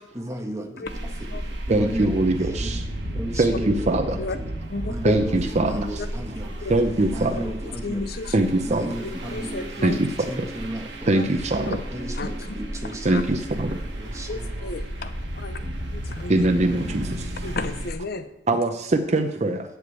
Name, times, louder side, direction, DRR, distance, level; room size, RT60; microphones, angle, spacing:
voice 1, 0.1-2.8 3.1-4.4 4.9-6.7 7.1-8.3 8.6-9.8 10.2-11.4 11.9-13.3 14.0-14.8 15.6-15.9, right 1 dB, 15° right, 2 dB, 1.4 m, -35 dB
sound 1, 0.8-17.9, right 1 dB, 70° right, 1.6 m, -33 dB
voice 2, 1.7-2.3 3.4-3.5 3.9-4.0 5.0-5.8 6.7-7.3 8.3-8.8 9.8-9.9 11.1-11.2 11.5-11.6 13.1-13.4 16.3-17.0 18.5-18.7 19.1-19.6, right 2 dB, 40° right, 5 dB, 0.7 m, -21 dB
voice 3, 4.7-5.1 6.0-6.1 6.6-6.9 7.8-8.3 9.0-10.0 11.0-11.3 11.7-11.8 12.2-12.3 13.1-13.2 14.3-15.6 15.9-16.5 17.4-18.3, left 3 dB, 60° left, 9 dB, 0.7 m, -32 dB
sound 2, 8.4-14.3, right 1 dB, 5° left, 4.3 m, -43 dB
8.0 x 6.9 x 8.2 m, 0.86 s
head